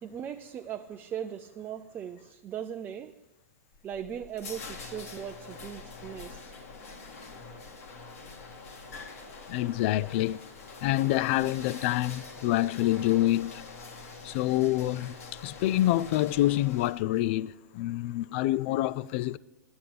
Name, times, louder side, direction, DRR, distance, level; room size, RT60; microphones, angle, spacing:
voice 1, 0.0-3.2 3.8-6.5, right 9 dB, 25° right, 0.4 m, -39 dB
sound 1, 3.7-17.3, left 4 dB, 70° left, 1.8 m, -45 dB
voice 2, 9.5-10.4 10.8-13.6 14.2-15.1 15.4-19.4, left 15 dB, 50° left, 0.4 m, -27 dB
10.5 x 8.8 x 6.6 m
hypercardioid pair, 110°, 8 cm